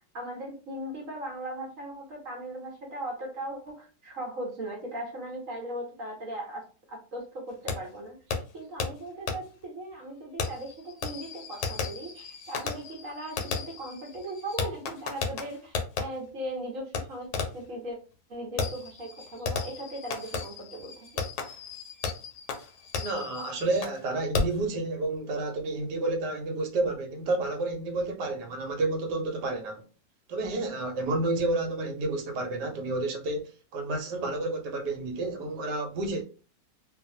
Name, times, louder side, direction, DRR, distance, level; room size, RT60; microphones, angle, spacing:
voice 1, 0.1-18.0 18.3-21.2, right 1 dB, 60° right, 1.0 m, -38 dB
Fireworks, 7.7-7.8 8.3-8.4 8.8-8.9 9.3-9.4 10.4-16.0 16.9-17.0 17.3-17.7 18.6-24.0 24.3-24.6, left 5 dB, 70° left, 1.0 m, -34 dB
voice 2, 23.0-29.8 30.3-36.2, right 2 dB, 80° right, 1.2 m, -30 dB
2.6 x 2.4 x 2.6 m
omnidirectional pair, 1.8 m